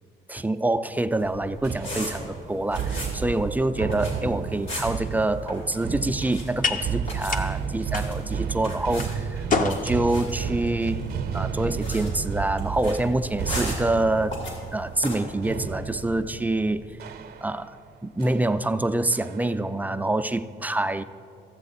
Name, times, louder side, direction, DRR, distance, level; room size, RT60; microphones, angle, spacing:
voice 1, 0.3-11.0 11.3-14.4 14.7-16.8 17.4-17.8 18.0-21.0, right 2 dB, 10° right, 10 dB, 0.3 m, -26 dB
sound 1, 1.2-15.2, left 1 dB, 70° left, 2.9 m, -39 dB
sound 2, 1.2-17.8 18.2-18.5 19.1-19.6, right 7 dB, 50° right, 0.6 m, -32 dB
sound 3, 5.1-13.5, left 4 dB, 45° left, 0.7 m, -34 dB
14.0 x 7.7 x 4.1 m, 2.4 s
cardioid pair, 90°, 20 cm